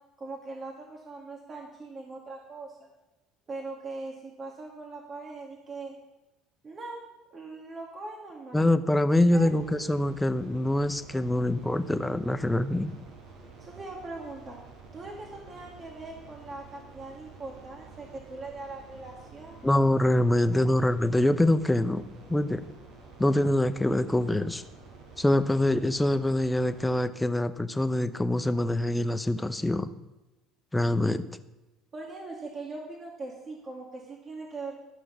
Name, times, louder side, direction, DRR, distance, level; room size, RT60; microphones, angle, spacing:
voice 1, 0.2-2.8 3.5-5.9 6.6-7.0 7.3-8.6 9.1-9.5 13.6-14.6 14.9-19.6 20.5-20.7 31.9-34.8, right 3 dB, 35° right, -1 dB, 2.1 m, -41 dB
voice 2, 8.5-12.9 19.6-22.0 22.3-22.6 23.2-24.6 25.2-29.9 30.7-31.2, left 1 dB, 10° left, 11 dB, 0.8 m, -25 dB
sound 1, 9.3-27.0, right 4 dB, 70° right, 4.5 m, -50 dB
13.5 x 6.2 x 5.9 m, 1.0 s
hypercardioid pair, 75°, 0 cm